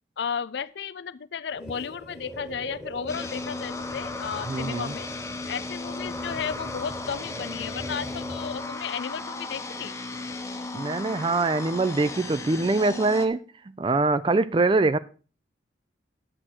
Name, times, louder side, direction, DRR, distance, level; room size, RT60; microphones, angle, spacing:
voice 1, 0.2-5.1 5.5-10.0, left 7 dB, 70° left, 0.4 m, -34 dB
sound 1, 1.5-8.9, equal, 5° right, 1.3 m, -40 dB
sound 2, 3.1-13.3, left 3 dB, 15° left, 0.9 m, -36 dB
voice 2, 4.5-4.9 10.7-13.4 13.8-15.0, right 3 dB, 25° right, 0.4 m, -23 dB
10.0 x 7.5 x 4.4 m
head